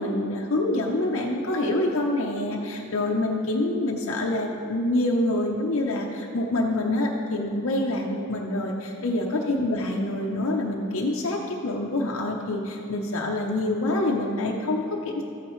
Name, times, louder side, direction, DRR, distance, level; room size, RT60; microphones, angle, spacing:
voice 1, 0.0-15.2, left 1 dB, 65° left, -1 dB, 0.7 m, -26 dB
13.5 x 8.7 x 3.1 m, 2.7 s
head